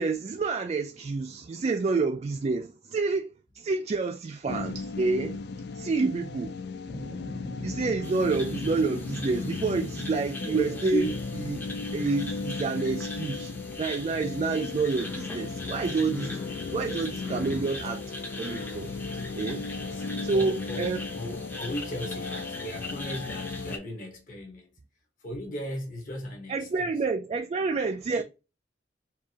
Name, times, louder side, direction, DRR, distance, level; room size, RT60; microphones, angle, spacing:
voice 1, 0.0-5.4 5.7-6.5 7.6-11.1 11.5-11.6 11.9-13.5 13.8-16.4 16.7-18.0 18.4-18.9 19.3-19.6 20.2-21.0 26.5-28.2, right 4 dB, 35° right, 0.3 m, -28 dB
sound 1, 4.5-23.8, left 4 dB, 60° left, 0.4 m, -36 dB
sound 2, 6.9-12.2, left 1 dB, 80° left, 1.1 m, -41 dB
sound 3, 8.0-23.8, left 1 dB, 10° left, 0.6 m, -41 dB
voice 2, 10.2-11.2 19.9-20.0 20.3-20.9 21.1-24.7 25.2-26.9 28.1-28.2, equal, 45° left, 1.0 m, -36 dB
4.4 x 2.5 x 2.8 m
head